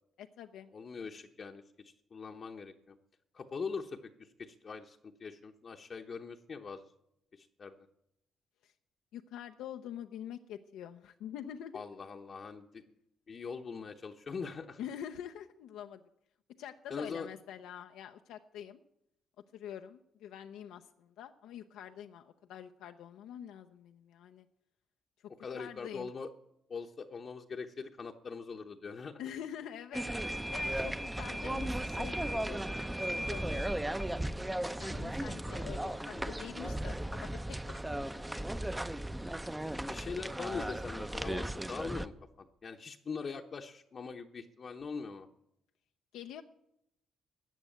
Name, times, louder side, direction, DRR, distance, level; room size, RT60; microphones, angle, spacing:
voice 1, 0.2-0.7 8.6-8.7 9.1-11.8 14.8-16.0 16.6-18.8 19.5-24.5 25.2-26.1 29.2-30.1 30.5-32.6 33.1-38.8 46.1-46.4, left 9 dB, 90° left, 6 dB, 0.6 m, -46 dB
voice 2, 0.7-3.0 3.3-6.9 7.3-7.9 11.7-12.8 13.3-14.8 16.9-17.3 25.4-26.3 26.7-29.2 36.1-36.4 39.8-45.3, left 5 dB, 45° left, 2 dB, 0.9 m, -42 dB
sound 1, 29.9-42.1, right 1 dB, 10° right, 0.6 m, -36 dB
14.0 x 8.1 x 9.1 m, 0.79 s
cardioid pair, 90°, 0 cm